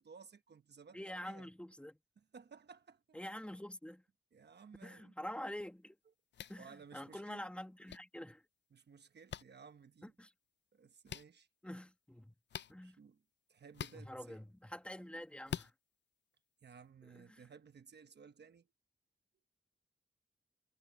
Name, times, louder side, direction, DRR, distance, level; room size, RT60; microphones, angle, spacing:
voice 1, 0.0-1.5 2.2-3.2 4.3-5.1 6.6-7.4 8.7-10.1 10.7-11.5 12.8-13.2 13.5-14.4 16.6-18.7, right 6 dB, 70° right, 1.1 m, -57 dB
voice 2, 0.9-2.0 3.1-4.0 4.8-6.0 6.5-8.4 10.2-10.3 11.6-12.4 12.7-13.0 13.9-15.7 17.0-17.4, left 1 dB, 5° left, 1.8 m, -47 dB
sound 1, 6.3-6.6 7.9-8.0 9.3-9.4 11.1-11.2 12.5-12.7 13.7-14.0 15.5-15.7, left 9 dB, 90° left, 0.4 m, -43 dB
wide cardioid pair, 135°, 18 cm